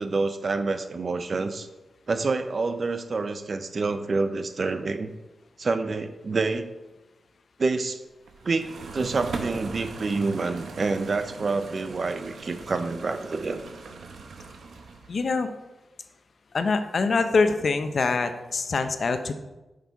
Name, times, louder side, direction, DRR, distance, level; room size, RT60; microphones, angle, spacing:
voice 1, 0.0-1.7 2.1-5.1 5.6-6.7 7.6-8.0 8.4-13.6, right 3 dB, 50° right, 9 dB, 0.6 m, -27 dB
sound 1, 8.3-15.3, right 4 dB, 80° right, 0.7 m, -40 dB
voice 2, 15.1-15.5 16.5-19.3, left 4 dB, 60° left, 8 dB, 0.6 m, -24 dB
6.5 x 5.3 x 4.6 m, 1.1 s
cardioid pair, 85°, 0 cm